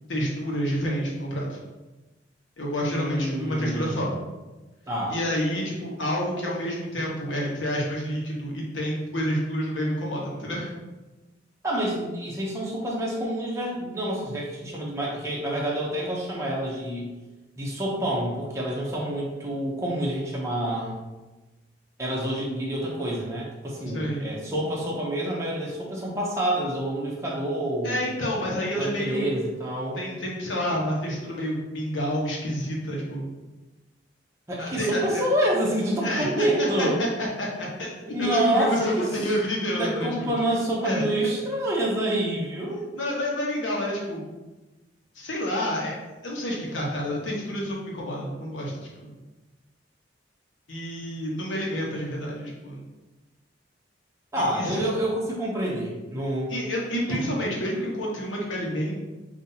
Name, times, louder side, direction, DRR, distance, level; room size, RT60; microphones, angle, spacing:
voice 1, 0.1-1.6 2.6-4.1 5.1-10.7 23.8-24.2 27.8-29.3 29.9-33.3 34.6-35.2 36.0-37.9 38.2-40.3 40.8-41.1 42.9-44.2 45.1-45.9 46.2-49.1 50.7-52.8 54.4-54.8 56.5-58.9, equal, 85° left, -3 dB, 1.2 m, -29 dB
voice 2, 2.8-4.2 4.9-5.2 11.6-17.1 17.6-21.0 22.0-28.0 28.8-30.0 34.5-37.0 38.1-39.1 39.8-42.8 54.3-56.5 57.1-57.2, right 1 dB, 15° right, -4 dB, 0.7 m, -27 dB
5.5 x 2.7 x 2.8 m, 1.1 s
head